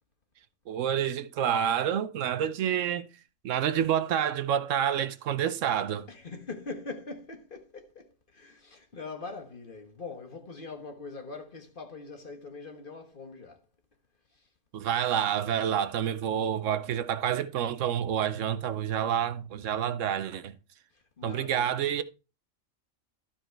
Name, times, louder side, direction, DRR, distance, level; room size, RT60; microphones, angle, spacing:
voice 1, 0.7-3.1 3.4-6.1 14.7-20.5 21.2-22.0, right 9 dB, 75° right, 1.0 m, -28 dB
voice 2, 6.1-13.6 14.3-14.5 20.9-21.8, left 4 dB, 45° left, 1.5 m, -42 dB
13.0 x 4.5 x 4.5 m
omnidirectional pair, 1.3 m